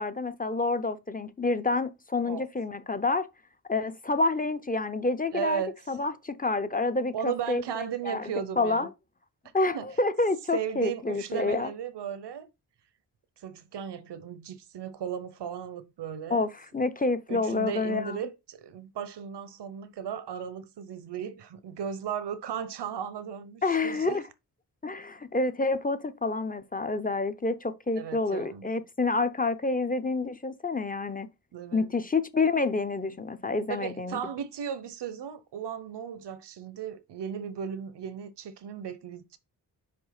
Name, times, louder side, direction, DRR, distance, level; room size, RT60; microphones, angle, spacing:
voice 1, 0.0-3.3 3.7-7.6 8.0-8.9 9.5-11.7 16.3-18.2 23.6-24.2 24.8-31.3 31.7-34.2, left 3 dB, 20° left, 0.7 m, -28 dB
voice 2, 5.3-5.8 7.1-8.9 9.7-9.9 10.5-12.5 13.4-16.5 17.3-24.2 27.9-28.7 31.5-31.9 33.7-39.4, right 8 dB, 85° right, 0.8 m, -36 dB
5.3 x 4.3 x 5.7 m
cardioid pair, 75°, 40 cm